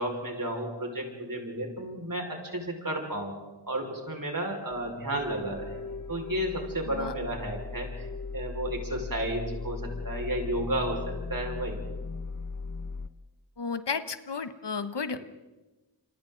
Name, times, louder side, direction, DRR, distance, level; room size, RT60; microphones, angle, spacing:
voice 1, 0.0-3.3 3.7-8.1 8.3-11.8, right 1 dB, 50° right, 1 dB, 5.2 m, -32 dB
sound 1, 4.7-13.1, left 4 dB, 45° left, 1.1 m, -38 dB
voice 2, 13.6-15.2, left 5 dB, 70° left, 11 dB, 1.1 m, -33 dB
28.5 x 25.0 x 3.9 m, 1.1 s
wide cardioid pair, 50°, 43 cm